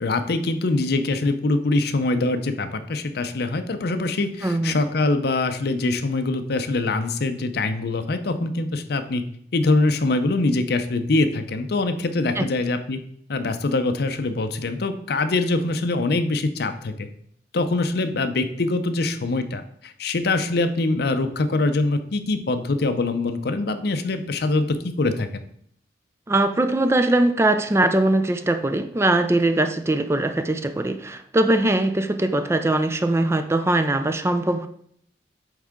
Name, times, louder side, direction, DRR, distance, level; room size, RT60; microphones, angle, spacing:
voice 1, 0.0-9.2 9.5-13.0 13.3-17.1 17.5-25.4, left 2 dB, 60° left, 9 dB, 0.6 m, -23 dB
voice 2, 4.4-4.8 12.4-12.5 26.3-34.7, right 2 dB, 15° right, 9 dB, 0.4 m, -21 dB
8.1 x 3.6 x 3.6 m, 0.66 s
head